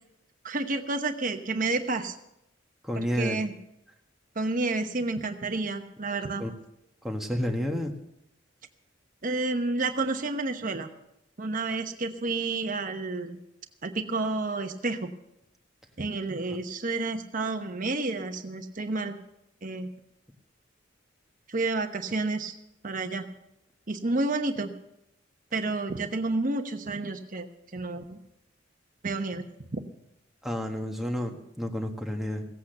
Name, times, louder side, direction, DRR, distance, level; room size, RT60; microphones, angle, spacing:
voice 1, 0.4-2.1 2.9-3.5 4.3-6.4 9.2-10.9 11.4-13.4 13.8-15.1 16.0-19.2 19.6-19.9 21.5-22.5 22.8-23.3 23.9-24.7 25.5-27.5 27.7-28.2 29.0-29.4 29.7-29.8, right 3 dB, 45° right, 6 dB, 1.0 m, -30 dB
voice 2, 2.8-3.4 6.4-6.5 7.0-7.9 30.4-32.4, equal, ahead, 2 dB, 1.4 m, -30 dB
17.0 x 8.4 x 6.7 m, 0.84 s
head